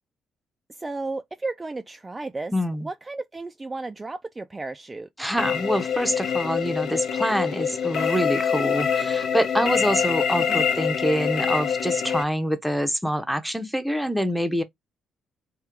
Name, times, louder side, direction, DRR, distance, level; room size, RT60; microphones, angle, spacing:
voice 1, 0.8-2.5 2.8-5.1 10.5-10.7, right 3 dB, 20° right, 0.4 m, -33 dB
voice 2, 2.5-2.9 5.2-14.6, equal, ahead, 0.8 m, -26 dB
sound 1, 5.4-12.2, left 7 dB, 65° left, 1.0 m, -25 dB
3.6 x 2.3 x 4.4 m
cardioid pair, 90°, 0 cm